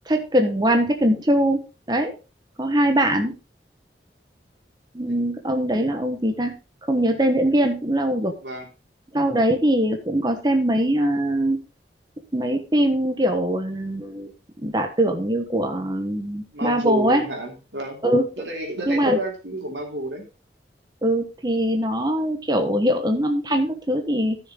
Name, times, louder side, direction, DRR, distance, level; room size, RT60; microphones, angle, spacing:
voice 1, 0.1-1.6 1.9-2.1 2.6-3.3 4.9-6.6 6.9-8.3 9.1-11.6 12.3-14.3 14.6-17.3 18.0-18.2 18.9-19.2 21.0-24.4, right 1 dB, 25° right, 4 dB, 1.1 m, -22 dB
voice 2, 16.5-18.0 18.4-20.2, right 1 dB, 80° right, 2 dB, 3.2 m, -30 dB
13.5 x 6.5 x 3.8 m, 0.31 s
head